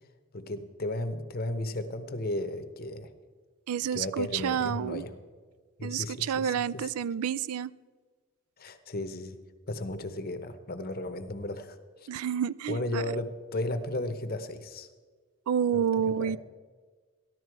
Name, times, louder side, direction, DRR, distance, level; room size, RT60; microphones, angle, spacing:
voice 1, 0.3-3.1 3.9-5.1 5.8-6.9 8.6-9.4 9.7-11.8 12.7-14.9 15.7-16.4, left 1 dB, 45° left, 9 dB, 0.8 m, -34 dB
voice 2, 3.7-5.0 5.8-7.7 12.1-13.0 15.5-16.4, right 8 dB, 85° right, 18 dB, 0.3 m, -29 dB
13.5 x 12.5 x 4.7 m, 1.5 s
head